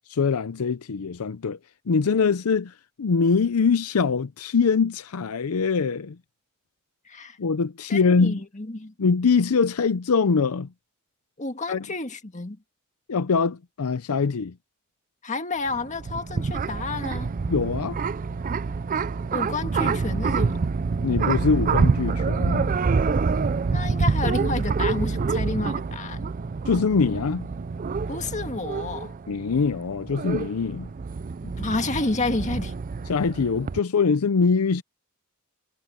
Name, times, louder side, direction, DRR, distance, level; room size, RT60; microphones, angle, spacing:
voice 1, 0.1-1.6 1.9-6.2 7.4-8.4 9.0-10.7 11.7-11.8 13.1-14.5 17.5-18.0 21.0-22.8 26.7-27.5 29.3-30.9 31.4-31.5 33.1-34.8, left 5 dB, 75° left, 0.6 m, -23 dB
voice 2, 7.1-7.4 7.9-8.9 11.4-12.6 15.2-17.3 19.3-20.6 23.7-26.3 28.1-29.1 31.6-32.7, left 3 dB, 35° left, 1.8 m, -30 dB
sound 1, 15.7-33.8, right 4 dB, 40° right, 0.4 m, -26 dB
head